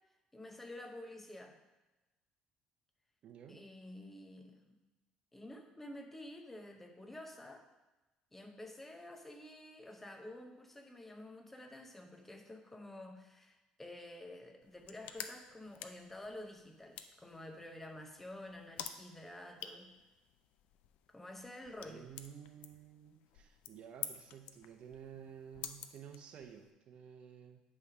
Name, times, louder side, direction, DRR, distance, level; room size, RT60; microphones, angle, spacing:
voice 1, 0.3-1.6 3.5-4.8 5.3-7.6 8.3-19.9 21.1-22.1, left 1 dB, 10° left, 4 dB, 0.9 m, -50 dB
voice 2, 3.2-3.7 21.8-27.6, right 8 dB, 55° right, 5 dB, 0.9 m, -53 dB
sound 1, 14.6-26.7, left 9 dB, 75° left, 0.5 m, -51 dB
9.6 x 3.5 x 5.0 m, 1.1 s
cardioid pair, 110°, 2 cm